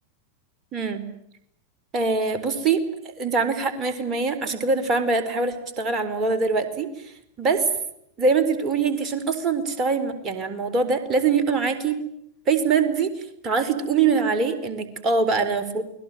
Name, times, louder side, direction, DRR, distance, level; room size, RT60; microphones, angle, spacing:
voice 1, 0.7-1.0 1.9-6.9 7.4-7.7 8.2-12.0 12.5-13.1 13.4-15.8, right 4 dB, 25° right, 8 dB, 4.3 m, -23 dB
29.5 x 21.0 x 9.4 m, 0.74 s
figure-of-eight pair, 90°, 0 cm